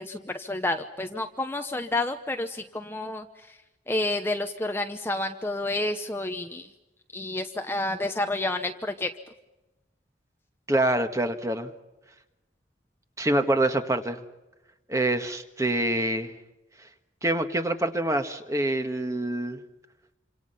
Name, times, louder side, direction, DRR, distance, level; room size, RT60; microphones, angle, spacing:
voice 1, 0.0-3.2 3.9-6.7 7.1-9.1, left 2 dB, 10° left, 6 dB, 0.9 m, -29 dB
voice 2, 10.7-11.7 13.2-14.2 14.9-16.3 17.2-19.6, right 1 dB, 15° right, 7 dB, 1.6 m, -26 dB
28.0 x 26.5 x 5.7 m, 1.0 s
head